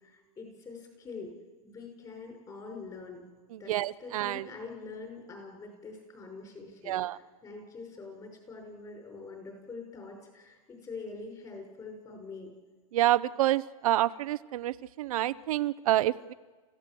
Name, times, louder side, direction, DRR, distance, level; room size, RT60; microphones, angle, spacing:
voice 1, 0.0-1.3 1.6-3.2 3.6-12.5, left 4 dB, 20° left, 3 dB, 5.8 m, -44 dB
voice 2, 3.5-4.5 6.8-7.2 12.9-16.3, right 14 dB, 70° right, 14 dB, 0.7 m, -28 dB
29.0 x 15.5 x 7.7 m, 1.4 s
supercardioid pair, 140°, 19 cm